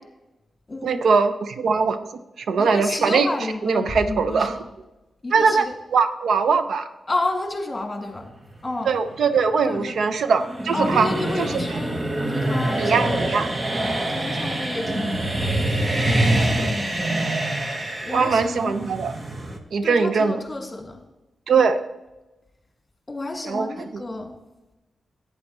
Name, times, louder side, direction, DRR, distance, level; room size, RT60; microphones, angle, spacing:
voice 1, 0.8-2.1 2.4-3.3 3.6-4.6 5.3-5.7 5.9-6.9 8.9-11.1 11.4-11.8 12.8-13.5 16.6-16.7 18.1-19.1 19.7-20.4 21.5-21.8 23.4-24.0, right 5 dB, 75° right, 10 dB, 0.6 m, -21 dB
voice 2, 2.6-4.6 5.2-5.7 7.1-8.3 8.6-8.9 9.6-10.0 10.7-13.2 14.1-15.3 16.0-17.4 18.0-18.8 19.8-21.0 23.1-24.3, left 2 dB, 25° left, 2 dB, 2.1 m, -31 dB
sound 1, 3.9-5.3, equal, 5° right, 0.9 m, -37 dB
sound 2, 8.4-19.6, right 1 dB, 30° right, 1.2 m, -25 dB
11.0 x 9.3 x 3.0 m, 1.0 s
cardioid pair, 70°, 0 cm